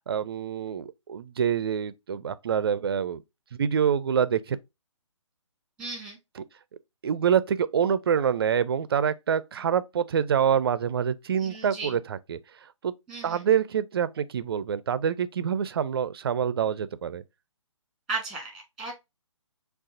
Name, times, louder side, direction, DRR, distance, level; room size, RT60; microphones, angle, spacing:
voice 1, 0.1-3.2 3.6-4.6 7.0-12.4 12.8-12.9 13.2-17.2, right 8 dB, 50° right, 0.4 m, -26 dB
voice 2, 5.8-6.2 11.4-11.9 13.1-13.4 18.1-19.0, right 4 dB, 5° right, 1.5 m, -35 dB
6.3 x 2.4 x 2.5 m
figure-of-eight pair, 140°, 17 cm